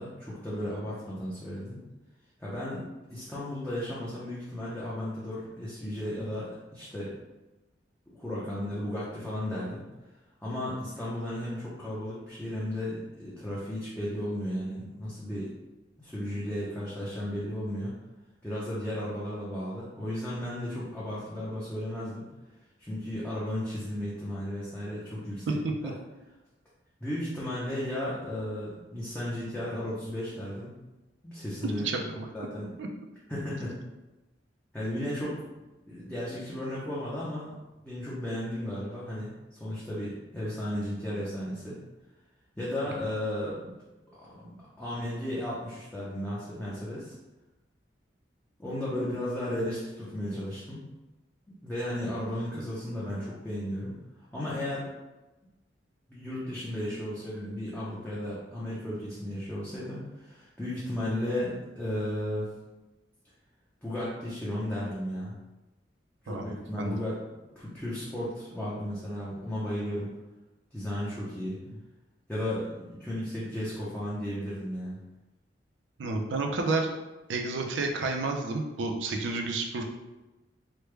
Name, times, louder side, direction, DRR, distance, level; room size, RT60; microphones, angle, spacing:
voice 1, 0.0-1.8 2.4-2.8 3.1-7.1 8.1-9.8 10.4-15.5 16.0-17.9 18.4-22.2 22.8-25.5 25.8-25.9 27.0-30.7 31.2-31.9 32.3-32.7 33.3-33.8 34.7-35.5 35.9-41.8 42.6-43.7 44.2-47.1 48.6-50.8 51.6-53.9 54.3-54.9 56.1-62.5 63.8-65.3 66.2-67.2 67.6-70.1 70.7-71.6 72.3-75.0, left 1 dB, 10° left, -9 dB, 0.6 m, -34 dB
voice 2, 31.6-32.3 32.8-32.9 66.3-67.0 71.7-71.8 76.0-76.9 77.3-79.8, right 3 dB, 80° right, 3 dB, 0.5 m, -30 dB
3.3 x 2.2 x 3.2 m, 1.1 s
head